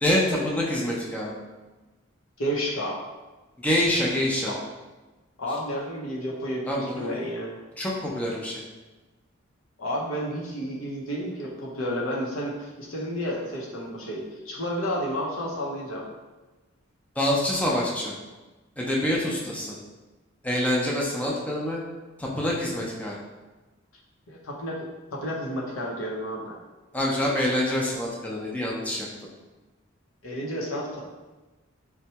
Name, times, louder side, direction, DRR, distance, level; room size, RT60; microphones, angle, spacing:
voice 1, 0.0-1.3 3.6-4.5 6.7-7.2 7.8-8.5 17.2-18.1 18.8-19.7 20.4-21.8 22.2-23.1 26.9-29.1, left 1 dB, 5° left, -4 dB, 0.4 m, -26 dB
voice 2, 2.4-3.0 4.4-4.6 5.4-7.6 9.8-16.0 24.3-26.6 30.2-31.0, equal, 90° left, -3 dB, 0.7 m, -31 dB
4.3 x 2.2 x 2.8 m, 1.2 s
head